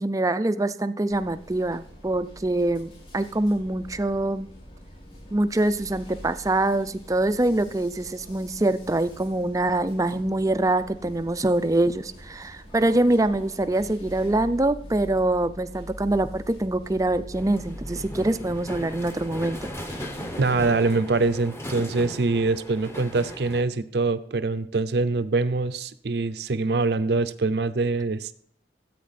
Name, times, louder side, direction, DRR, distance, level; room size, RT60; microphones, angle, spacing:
voice 1, 0.0-4.5 5.3-19.6, right 2 dB, 20° right, 12 dB, 0.4 m, -24 dB
sound 1, 1.1-20.7, equal, 35° left, 6.1 m, -44 dB
sound 2, 17.3-23.6, equal, 15° left, 1.0 m, -37 dB
voice 2, 20.4-28.3, right 3 dB, 65° right, 13 dB, 0.6 m, -24 dB
13.5 x 8.5 x 4.2 m, 0.65 s
head